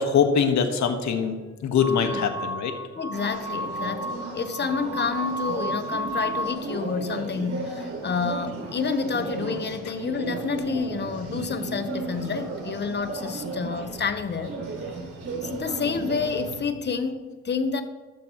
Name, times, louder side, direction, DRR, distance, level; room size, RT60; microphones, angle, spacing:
voice 1, 0.0-1.4 1.6-2.7, left 6 dB, 70° left, 6 dB, 1.5 m, -23 dB
sound 1, 1.8-6.6, equal, 10° right, 1.6 m, -32 dB
voice 2, 2.0-2.4 2.9-14.6 15.4-17.8, left 5 dB, 35° left, 9 dB, 1.1 m, -29 dB
sound 2, 3.1-16.6, right 3 dB, 50° right, 3.5 m, -35 dB
13.0 x 12.5 x 3.1 m, 1.3 s
cardioid pair, 90°, 30 cm